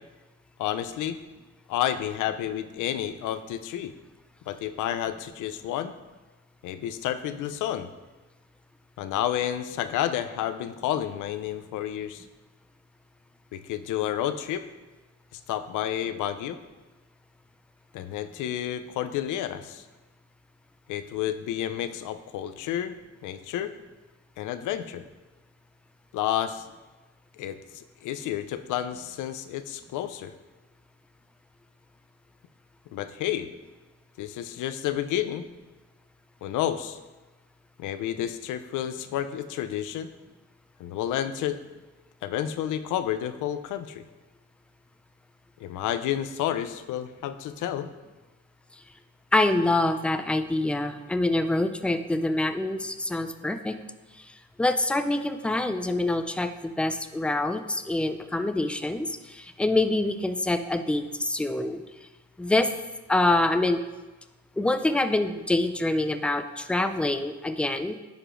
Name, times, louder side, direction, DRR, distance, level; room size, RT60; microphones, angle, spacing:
voice 1, 0.6-1.2 1.7-3.9 4.5-5.9 6.6-7.9 9.0-12.2 13.5-14.6 15.3-16.6 17.9-19.8 20.9-23.7 24.4-25.0 26.1-26.6 27.4-30.3 32.9-33.5 34.2-35.5 36.4-37.0 37.8-40.1 40.8-41.6 42.2-44.0 45.6-47.9, left 11 dB, 80° left, 11 dB, 0.5 m, -30 dB
voice 2, 49.3-53.8 54.2-61.8 62.4-62.7 63.1-63.8 64.6-68.0, left 2 dB, 5° left, 8 dB, 0.3 m, -26 dB
10.5 x 4.8 x 2.5 m, 1.2 s
cardioid pair, 90°, 30 cm